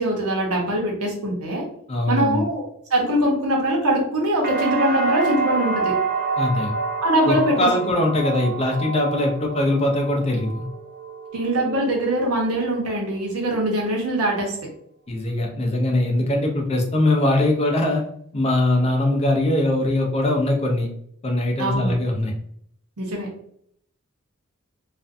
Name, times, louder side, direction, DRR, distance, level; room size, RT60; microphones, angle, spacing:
voice 1, 0.0-1.7 2.1-2.6 2.9-5.9 7.0-7.7 11.3-14.6 21.6-21.9 23.0-23.3, right 1 dB, 85° right, -1 dB, 0.8 m, -22 dB
voice 2, 1.9-2.5 6.4-6.7 7.3-10.7 15.1-18.0 18.3-20.9 21.2-22.3, left 1 dB, 30° left, 1 dB, 0.5 m, -21 dB
sound 1, 4.4-12.3 12.7-13.4, right 4 dB, 45° right, 0.4 m, -28 dB
2.5 x 2.2 x 2.5 m, 0.68 s
head